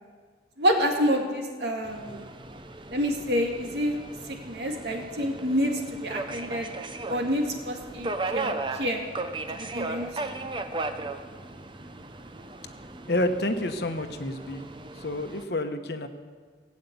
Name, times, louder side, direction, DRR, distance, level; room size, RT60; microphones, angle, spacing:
voice 1, 0.6-2.3 2.9-4.0 4.3-6.7 7.1-9.0 9.5-10.4, equal, 60° right, 2 dB, 2.2 m, -28 dB
Subway metro underground, 1.8-15.4, right 2 dB, 25° right, 0.7 m, -37 dB
voice 2, 13.1-14.6 14.9-16.1, left 1 dB, 60° left, 7 dB, 1.1 m, -29 dB
17.5 x 8.5 x 8.3 m, 1.5 s
head